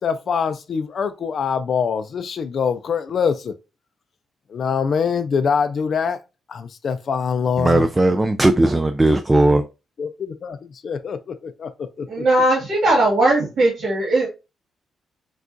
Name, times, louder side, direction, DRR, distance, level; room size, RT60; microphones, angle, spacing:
voice 1, 0.0-3.5 4.5-6.2 6.5-7.9 10.0-12.3, left 6 dB, 50° left, 0.5 m, -24 dB
voice 2, 7.6-9.6, right 2 dB, 15° right, 0.3 m, -17 dB
voice 3, 12.1-14.3, right 2 dB, 75° right, 1.8 m, -18 dB
6.0 x 2.4 x 2.7 m
wide cardioid pair, 150°, 0 cm